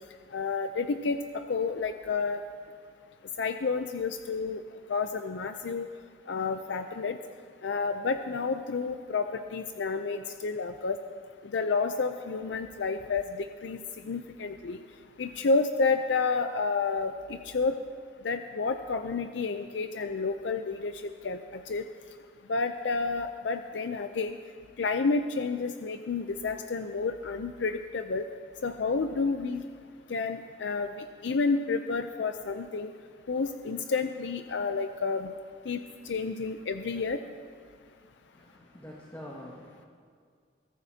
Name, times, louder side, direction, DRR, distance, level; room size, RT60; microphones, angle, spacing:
voice 1, 0.3-2.4 3.4-4.6 4.9-5.9 6.3-7.2 7.6-11.0 11.5-13.8 14.0-14.8 15.2-17.8 18.2-21.4 21.7-21.8 22.5-24.4 24.8-28.2 28.6-29.6 30.1-32.9 33.3-35.3 35.7-37.2, left 4 dB, 80° left, 7 dB, 0.5 m, -30 dB
voice 2, 38.3-39.9, equal, 15° left, -5 dB, 1.8 m, -46 dB
22.5 x 14.5 x 2.8 m, 2.1 s
head